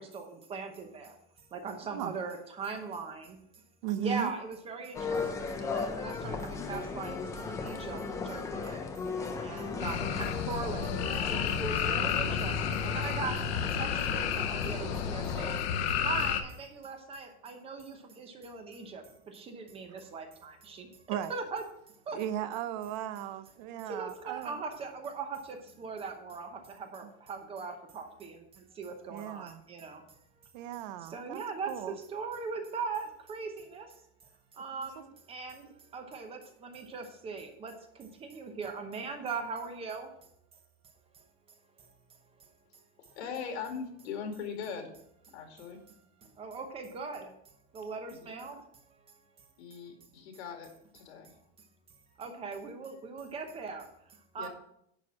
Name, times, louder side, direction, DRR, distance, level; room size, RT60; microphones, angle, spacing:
voice 1, 0.5-1.1 1.5-3.2 4.0-5.2 5.7-6.4 6.7-8.0 8.3-8.8 9.4-11.1 11.3-12.5 12.8-13.4 13.8-15.5 16.0-19.0 19.5-20.9 21.3-21.6 22.1-22.2 23.9-25.4 25.8-26.5 26.9-28.3 28.8-30.0 31.1-31.7 32.1-33.8 34.6-34.9 35.3-35.5 35.9-36.4 36.7-37.7 38.3-40.1 46.4-47.2 47.7-48.5 52.2-53.8 54.3-54.5, right 4 dB, 15° right, 5 dB, 0.8 m, -39 dB
voice 2, 3.8-4.3 21.1-21.3 22.1-24.6 27.0-27.1 29.1-29.6 30.5-31.4 31.7-32.0, right 11 dB, 40° right, 13 dB, 0.5 m, -36 dB
sound 1, 4.9-15.6, left 4 dB, 10° left, 0.4 m, -37 dB
sound 2, 9.8-16.4, left 8 dB, 65° left, 1.1 m, -31 dB
voice 3, 43.1-44.9 45.3-45.8 48.1-48.5 49.6-50.7 50.9-51.3 54.4-54.5, left 6 dB, 80° left, 4 dB, 2.3 m, -40 dB
10.5 x 4.4 x 6.1 m, 0.72 s
supercardioid pair, 170°, 33 cm